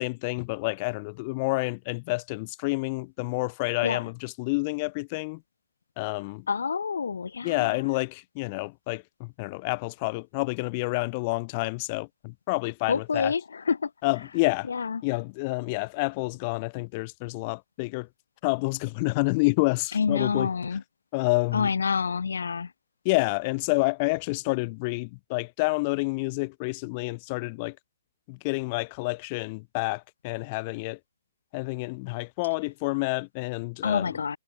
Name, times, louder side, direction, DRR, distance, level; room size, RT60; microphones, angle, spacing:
voice 1, 0.0-5.4 6.0-6.5 7.4-13.3 14.0-14.7 15.0-18.1 18.4-20.5 21.1-21.7 23.0-27.8 28.3-31.0 31.5-34.2, left 27 dB, 30° left, 5.8 m, -29 dB
voice 2, 6.5-7.8 12.9-13.9 14.7-15.0 19.9-20.8 21.5-22.7 33.8-34.4, left 5 dB, 65° left, 3.8 m, -27 dB
figure-of-eight pair, 130°, 0 cm